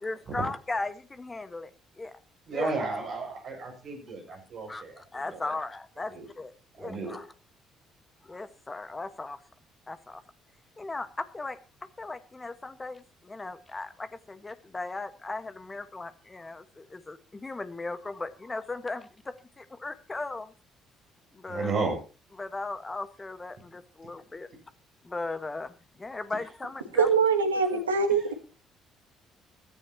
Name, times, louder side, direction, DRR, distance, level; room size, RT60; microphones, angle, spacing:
voice 1, 0.0-1.7 2.0-2.1 2.5-2.7 4.7-4.8 5.1-6.5 6.8-7.2 8.2-9.4 9.9-10.2 10.8-11.6 12.0-20.5 21.3-21.7 22.4-24.5 25.0-27.1 27.7-27.8, left 3 dB, 25° left, 1.5 m, -37 dB
voice 2, 2.5-5.5 6.1-6.3 6.8-7.2 21.5-22.0 28.1-28.3, right 4 dB, 50° right, 6.8 m, -33 dB
voice 3, 26.9-28.3, right 5 dB, 85° right, 1.5 m, -23 dB
16.0 x 13.5 x 3.0 m
figure-of-eight pair, 50°, 0 cm